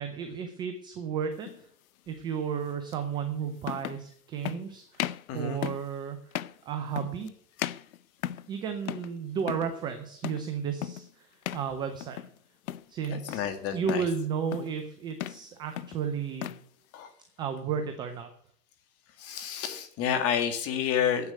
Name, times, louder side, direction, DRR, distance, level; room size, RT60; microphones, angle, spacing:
voice 1, 0.0-1.5 2.1-6.2 6.7-7.3 8.5-12.2 12.9-13.4 13.7-16.5 17.4-18.3, right 7 dB, 10° right, 7 dB, 0.4 m, -33 dB
sound 1, 1.4-1.6 2.9-3.0 3.6-4.1 4.4-4.6 4.9-5.3 5.6-5.9 6.3-6.6 7.0-7.3 7.6-8.5 8.9-9.1 9.4-9.7 10.2-10.5 10.8-11.1 11.4-11.7 12.0-12.4 12.7-13.5 13.9-14.1 14.5-14.8 15.1-15.5 15.8-16.6, left 12 dB, 60° left, 0.7 m, -36 dB
voice 2, 5.3-5.6 13.0-14.1 16.9-17.1 19.2-21.3, left 8 dB, 30° left, 8 dB, 1.9 m, -30 dB
9.8 x 7.8 x 9.0 m, 0.62 s
hypercardioid pair, 125°, 48 cm